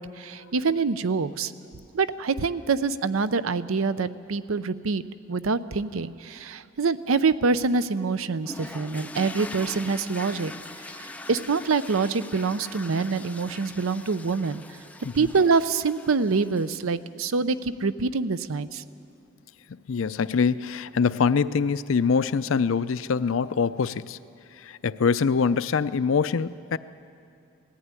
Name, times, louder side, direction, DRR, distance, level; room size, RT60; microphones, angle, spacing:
voice 1, 0.0-1.5 1.9-5.0 5.3-10.5 11.0-14.6 15.1-18.8, right 4 dB, 85° right, 14 dB, 0.6 m, -25 dB
sound 1, 8.5-16.9, left 2 dB, 5° left, 0.4 m, -42 dB
voice 2, 19.9-24.2 24.6-26.8, left 5 dB, 75° left, 15 dB, 0.5 m, -24 dB
19.0 x 14.5 x 9.7 m, 2.6 s
head